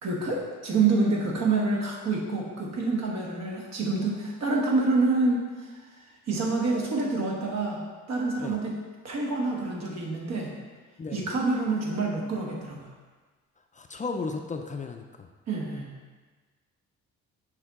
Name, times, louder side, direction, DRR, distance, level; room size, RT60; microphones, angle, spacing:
voice 1, 0.0-5.7 6.3-7.8 8.1-8.7 9.0-10.5 11.1-12.9 15.5-15.9, right 3 dB, 60° right, -1 dB, 1.4 m, -27 dB
voice 2, 13.7-15.3, left 4 dB, 25° left, 4 dB, 0.4 m, -34 dB
6.5 x 4.3 x 3.6 m, 1.4 s
cardioid pair, 90°, 30 cm